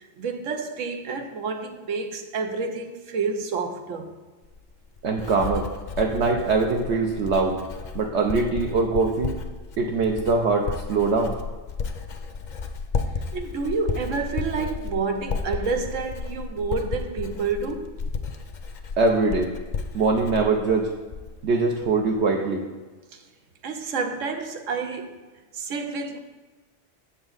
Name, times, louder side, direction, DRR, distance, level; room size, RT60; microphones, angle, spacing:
voice 1, 0.0-4.1 13.3-17.9 23.6-25.1 25.5-26.2, right 4 dB, 90° right, 1.2 m, -29 dB
Writing, 4.4-21.5 21.8-22.2, left 5 dB, 50° left, 0.6 m, -33 dB
voice 2, 5.0-5.7 6.0-7.6 7.9-9.3 9.8-11.4 19.0-19.5 19.9-20.9 21.4-22.6, right 3 dB, 70° right, 0.9 m, -22 dB
7.7 x 7.0 x 3.9 m
omnidirectional pair, 1.3 m